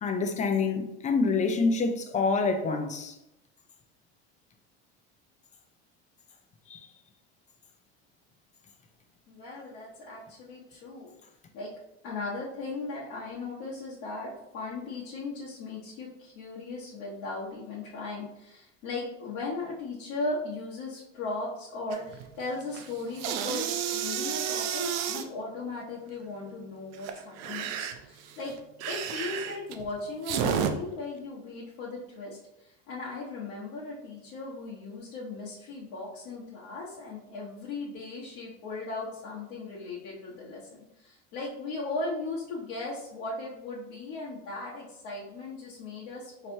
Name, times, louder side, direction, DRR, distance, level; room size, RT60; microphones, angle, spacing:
voice 1, 0.0-3.1 6.7-6.9, left 4 dB, 25° left, 0.5 m, -27 dB
voice 2, 9.3-11.1 11.5-11.7 12.0-28.5 28.9-40.7 41.0-46.5, left 3 dB, 75° left, 1.1 m, -37 dB
sound 1, 21.9-22.3 22.6-25.3 26.9-30.7, right 8 dB, 55° right, 0.5 m, -31 dB
4.2 x 3.2 x 2.6 m
supercardioid pair, 110°, 31 cm